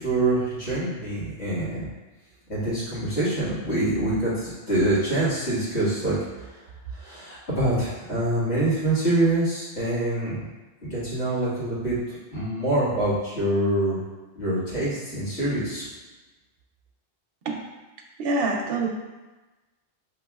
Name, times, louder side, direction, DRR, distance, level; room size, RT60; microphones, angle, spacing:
voice 1, 0.0-1.9 2.5-6.2 6.9-10.5 10.9-14.0 14.4-15.8, right 1 dB, 80° left, -10 dB, 1.9 m, -25 dB
voice 2, 18.2-18.9, right 3 dB, 65° right, 1 dB, 0.7 m, -25 dB
5.5 x 3.0 x 2.4 m, 1.2 s
omnidirectional pair, 1.1 m